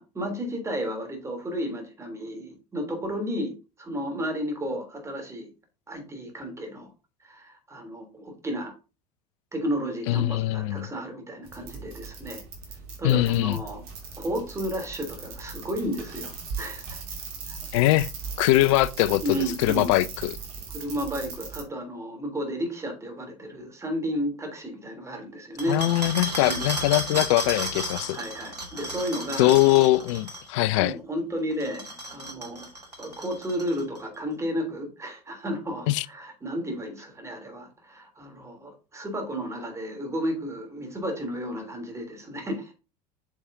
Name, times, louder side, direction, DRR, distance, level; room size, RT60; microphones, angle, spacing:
voice 1, 0.0-3.5 3.8-5.5 5.9-6.9 7.2-8.7 9.5-12.4 13.0-13.8 14.2-17.0 17.5-17.9 19.2-20.0 20.7-25.8 26.5-26.6 28.1-29.5 30.5-32.7 33.0-42.7, equal, 15° right, 3.1 m, -33 dB
voice 2, 10.1-10.9 13.0-13.6 17.7-18.1 18.4-20.4 25.7-28.2 29.4-31.0 35.9-36.1, left 17 dB, 50° left, 0.5 m, -22 dB
sound 1, 11.5-21.6, right 5 dB, 60° right, 3.1 m, -39 dB
sound 2, 25.6-30.5 31.5-34.0, right 1 dB, 85° right, 1.5 m, -34 dB
8.0 x 7.1 x 2.7 m
figure-of-eight pair, 75°, 20 cm